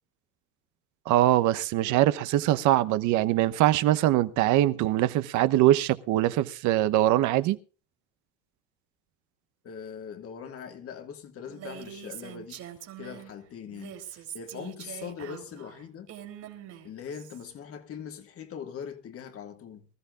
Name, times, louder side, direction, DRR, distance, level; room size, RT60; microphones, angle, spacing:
voice 1, 1.1-7.6, right 14 dB, 70° right, 1.0 m, -23 dB
voice 2, 9.6-12.6 13.0-16.1 16.8-19.9, left 7 dB, 45° left, 2.1 m, -41 dB
Female speech woman speaking, 11.5-13.3 13.7-17.4, right 10 dB, 55° right, 3.2 m, -43 dB
24.0 x 14.0 x 2.5 m
cardioid pair, 115°, 31 cm